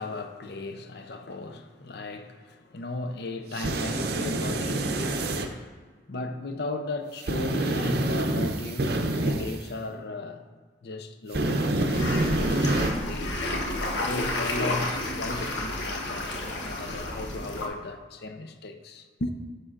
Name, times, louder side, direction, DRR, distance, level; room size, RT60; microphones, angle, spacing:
voice 1, 0.0-10.5 10.8-13.4 14.0-19.3, left 2 dB, 60° left, 0.6 m, -36 dB
sound 1, 3.5-5.5 7.2-9.6 11.3-12.9, right 2 dB, 60° right, 0.6 m, -27 dB
sound 2, 11.9-17.7, left 1 dB, 80° left, 1.0 m, -31 dB
9.6 x 6.6 x 2.5 m
head